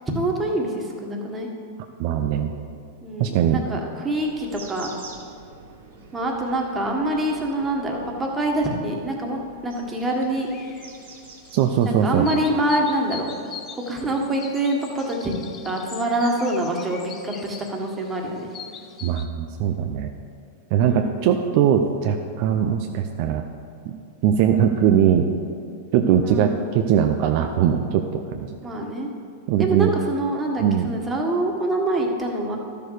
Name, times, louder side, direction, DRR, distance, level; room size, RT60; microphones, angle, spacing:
voice 1, 0.1-1.5 3.0-4.9 6.1-10.5 11.9-13.3 13.9-15.4 15.6-18.5 20.8-21.1 26.2-26.7 28.6-29.1 29.6-32.6, right 1 dB, 15° right, 0 dB, 1.7 m, -25 dB
voice 2, 2.0-2.5 3.2-3.6 11.5-12.3 19.0-20.1 20.7-23.4 23.9-24.0 24.2-25.3 25.9-28.0 28.3-28.5 29.5-29.9 30.6-30.9, right 9 dB, 55° right, 5 dB, 0.6 m, -20 dB
sound 1, 4.2-12.7, right 4 dB, 75° right, 2.3 m, -46 dB
sound 2, 10.4-19.2, left 7 dB, 35° left, 0.7 m, -42 dB
12.0 x 6.7 x 4.9 m, 2.4 s
hypercardioid pair, 105°, 0 cm